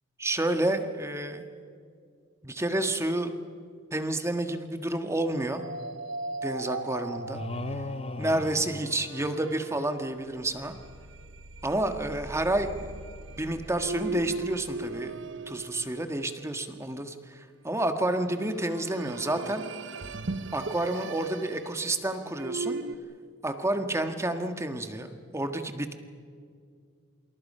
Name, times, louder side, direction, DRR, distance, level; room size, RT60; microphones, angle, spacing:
voice 1, 0.2-1.4 2.4-3.3 3.9-5.6 6.4-7.4 8.2-10.8 11.6-12.9 13.3-15.1 15.5-19.6 20.5-22.8 23.4-26.0, right 1 dB, 15° right, 7 dB, 1.5 m, -30 dB
sound 1, 5.5-16.6 18.2-23.0, right 3 dB, 65° right, 1.0 m, -38 dB
sound 2, 7.3-9.8, left 3 dB, 30° left, 0.5 m, -38 dB
28.0 x 27.0 x 5.6 m, 2.2 s
head